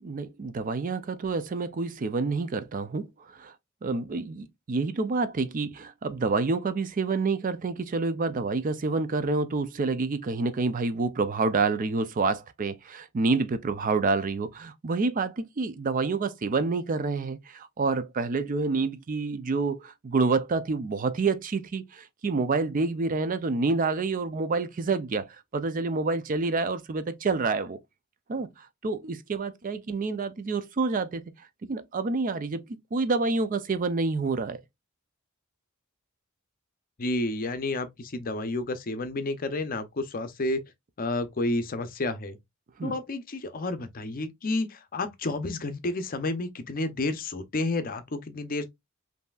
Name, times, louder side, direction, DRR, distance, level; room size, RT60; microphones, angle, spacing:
voice 1, 0.0-3.5 3.8-27.8 28.3-32.6 32.9-34.6 42.8-42.9, right 4 dB, 40° right, 0.4 m, -28 dB
voice 2, 37.0-40.6 41.0-42.4 42.8-48.7, left 2 dB, 45° left, 0.6 m, -30 dB
5.4 x 2.7 x 2.3 m
head